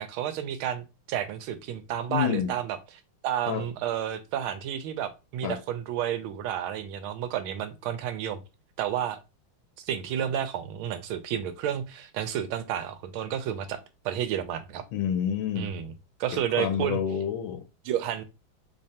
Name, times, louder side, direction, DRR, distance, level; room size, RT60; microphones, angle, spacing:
voice 1, 0.0-2.8 3.2-8.4 8.8-9.2 9.8-13.8 14.0-14.8 15.6-15.9 16.2-17.0 17.8-18.2, right 10 dB, 85° right, 1.4 m, -31 dB
voice 2, 2.1-2.5 3.5-3.6 5.4-5.6 14.9-15.7 16.3-17.7, left 9 dB, 80° left, 1.4 m, -28 dB
3.5 x 3.1 x 2.8 m
omnidirectional pair, 2.3 m